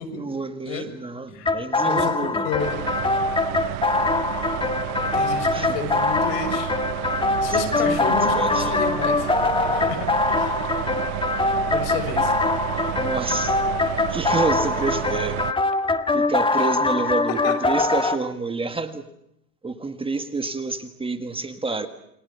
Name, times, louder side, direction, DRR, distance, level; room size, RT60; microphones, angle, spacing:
voice 1, 0.0-2.5 5.5-5.8 7.5-8.8 13.0-13.6 14.1-15.4 16.1-19.1 19.6-21.9, right 3 dB, 10° right, 8 dB, 1.8 m, -29 dB
sound 1, 1.4-18.2, left 3 dB, 10° left, 1.5 m, -23 dB
voice 2, 1.9-2.8 4.9-6.7 7.4-9.3 9.7-10.6 11.6-12.3 17.4-17.5, left 6 dB, 70° left, 11 dB, 6.5 m, -31 dB
sound 2, 2.6-15.5, right 21 dB, 55° right, 0.9 m, -31 dB
28.5 x 24.0 x 7.1 m, 0.78 s
supercardioid pair, 130°, 49 cm